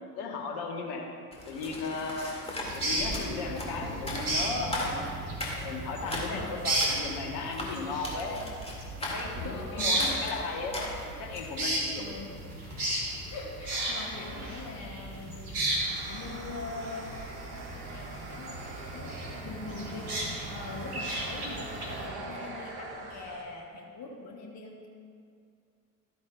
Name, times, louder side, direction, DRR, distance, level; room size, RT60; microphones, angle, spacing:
voice 1, 0.2-1.1 1.4-2.3 2.7-5.2 5.6-8.4 9.0-12.2, left 3 dB, 60° left, 1 dB, 1.3 m, -36 dB
sound 1, 1.3-11.5, left 1 dB, 15° left, 2.2 m, -38 dB
sound 2, 2.6-22.1, right 1 dB, 90° right, 1.4 m, -35 dB
voice 2, 6.2-6.6 9.3-10.0 12.0-12.3 13.3-15.6 16.1-20.1 20.5-24.9, left 3 dB, 40° left, 0 dB, 1.2 m, -42 dB
sound 3, 13.7-23.4, right 2 dB, 60° right, 1.6 m, -43 dB
13.5 x 9.2 x 2.4 m, 2.4 s
figure-of-eight pair, 55°, 44 cm